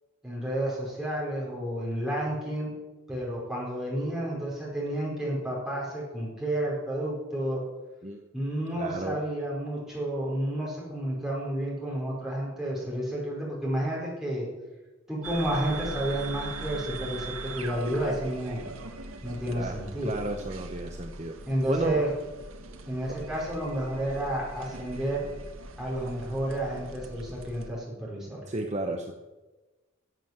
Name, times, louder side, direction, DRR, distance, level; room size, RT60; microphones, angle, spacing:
voice 1, 0.2-2.7 3.1-7.6 8.3-14.5 15.1-18.7 19.2-20.1 21.5-22.1 22.9-25.3 25.8-28.4, right 1 dB, 5° right, -6 dB, 5.2 m, -31 dB
voice 2, 8.8-9.2 19.5-21.4 21.7-22.0 28.5-29.1, right 2 dB, 35° right, 3 dB, 0.9 m, -32 dB
sound 1, 15.2-27.7, right 3 dB, 85° right, 1.3 m, -41 dB
14.5 x 7.7 x 7.8 m, 1.2 s
head